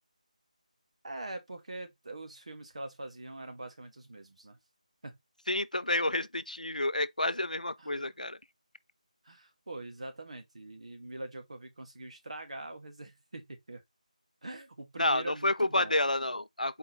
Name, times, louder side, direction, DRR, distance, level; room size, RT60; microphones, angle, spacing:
voice 1, 1.0-4.6 5.0-5.2 7.8-8.0 9.2-13.8 14.4-15.9, right 2 dB, 55° right, 1.5 m, -43 dB
voice 2, 5.5-8.4 15.0-16.8, left 1 dB, 85° left, 0.5 m, -30 dB
4.7 x 3.6 x 3.0 m
figure-of-eight pair, 160°, 4 cm